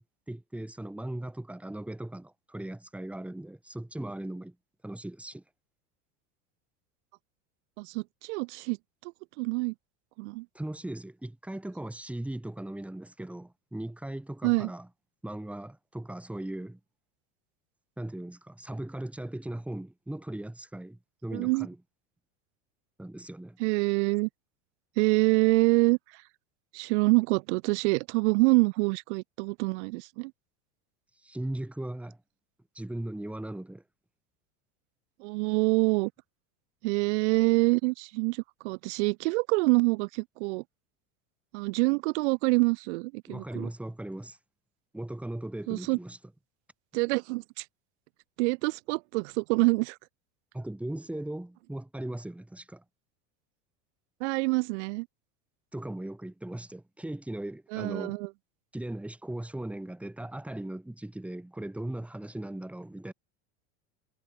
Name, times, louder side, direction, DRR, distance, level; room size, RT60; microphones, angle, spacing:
voice 1, 0.0-4.6 4.8-5.4 10.5-14.9 15.2-16.8 18.0-21.8 23.0-23.6 31.2-32.2 32.7-33.8 43.3-44.4 44.9-46.2 50.5-52.8 55.7-58.2 58.7-63.1, right 1 dB, 5° right, 4.1 m, -38 dB
voice 2, 7.8-8.8 9.0-9.1 9.4-9.7 10.2-10.5 14.4-14.7 21.3-21.7 23.6-24.3 25.0-26.2 26.7-30.3 35.2-36.1 36.8-40.6 41.5-43.7 45.7-46.0 46.9-47.6 48.4-50.0 54.2-55.1 57.7-58.3, right 26 dB, 70° right, 3.0 m, -26 dB
supercardioid pair, 135°, 36 cm